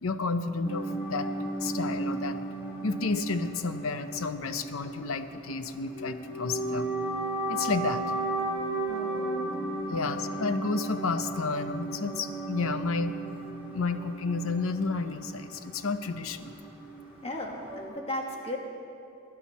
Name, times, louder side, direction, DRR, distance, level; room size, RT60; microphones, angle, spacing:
voice 1, 0.0-1.3 1.6-2.4 2.8-6.9 7.5-8.0 9.9-13.2 13.7-16.5, left 4 dB, 85° left, 10 dB, 0.7 m, -31 dB
sound 1, 0.6-17.9, right 2 dB, 10° right, 3.6 m, -35 dB
voice 2, 8.9-10.1 10.4-10.5 17.2-18.6, left 1 dB, 30° left, 0 dB, 1.6 m, -37 dB
21.5 x 9.9 x 4.2 m, 2.7 s
head